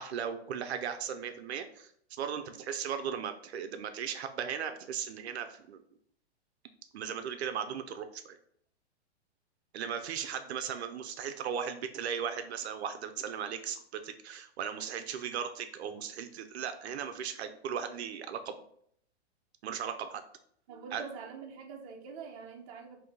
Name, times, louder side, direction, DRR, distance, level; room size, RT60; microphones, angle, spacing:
voice 1, 0.0-1.9 2.2-5.8 6.9-8.4 9.7-18.6 19.6-20.2 20.9-21.0, right 8 dB, 70° right, 8 dB, 0.5 m, -37 dB
voice 2, 20.7-23.0, right 5 dB, 30° right, 1 dB, 0.6 m, -45 dB
3.6 x 2.7 x 3.8 m, 0.67 s
hypercardioid pair, 160°, 33 cm